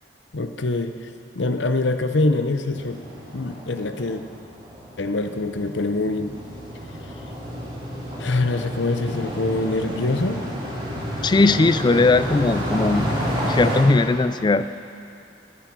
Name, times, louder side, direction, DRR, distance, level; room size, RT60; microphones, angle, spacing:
voice 1, 0.3-3.0 3.3-4.2 5.0-6.4 8.2-10.4, left 2 dB, 75° left, 8 dB, 0.8 m, -24 dB
sound 1, 2.7-13.8, equal, 30° right, 3.6 m, -30 dB
voice 2, 11.2-13.1 13.5-14.7, left 3 dB, 25° left, 13 dB, 0.3 m, -18 dB
14.5 x 12.5 x 6.1 m, 2.6 s
head